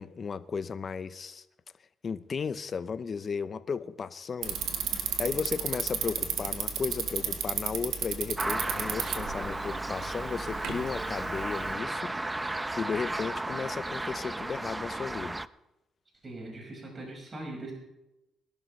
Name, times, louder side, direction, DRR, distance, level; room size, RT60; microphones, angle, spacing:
voice 1, 0.0-1.4 2.0-4.6 5.2-15.4, left 5 dB, 45° left, 14 dB, 0.6 m, -35 dB
Bicycle, 4.4-11.7, right 7 dB, 80° right, 1.6 m, -34 dB
sound 1, 8.4-15.5, right 2 dB, 15° right, 0.4 m, -34 dB
voice 2, 16.2-17.7, right 2 dB, 35° right, 0 dB, 5.2 m, -41 dB
22.0 x 12.0 x 3.2 m, 0.93 s
cardioid pair, 90°, 0 cm